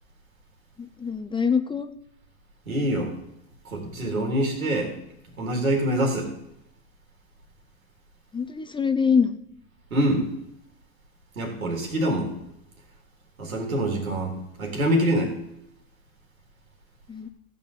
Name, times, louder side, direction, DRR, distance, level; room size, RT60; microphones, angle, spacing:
voice 1, 1.0-1.9 8.3-9.4 17.1-17.3, left 6 dB, 10° left, 9 dB, 0.6 m, -24 dB
voice 2, 2.7-3.1 3.6-4.9 5.4-6.3 9.9-10.3 11.4-12.3 13.4-15.4, right 1 dB, 85° right, 2 dB, 3.6 m, -25 dB
14.5 x 5.4 x 8.5 m, 0.80 s
hypercardioid pair, 100°, 41 cm